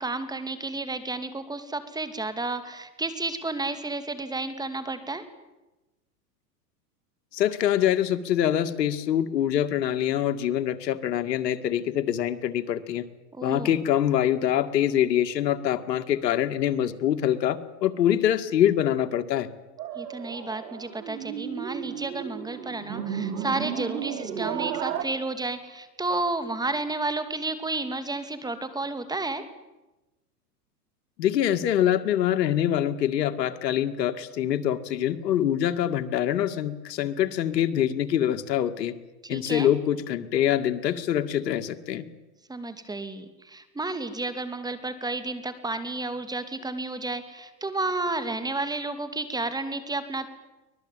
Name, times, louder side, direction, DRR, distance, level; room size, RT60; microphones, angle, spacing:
voice 1, 0.0-5.3 13.3-13.7 19.9-29.4 39.2-39.7 42.5-50.3, right 2 dB, 10° right, 10 dB, 2.3 m, -31 dB
voice 2, 7.3-13.1 13.4-19.5 31.2-38.9 39.3-42.0, left 11 dB, 85° left, 9 dB, 2.1 m, -24 dB
sound 1, 19.8-25.0, right 9 dB, 80° right, 3.2 m, -33 dB
24.5 x 19.5 x 9.1 m, 1.0 s
supercardioid pair, 130°, 49 cm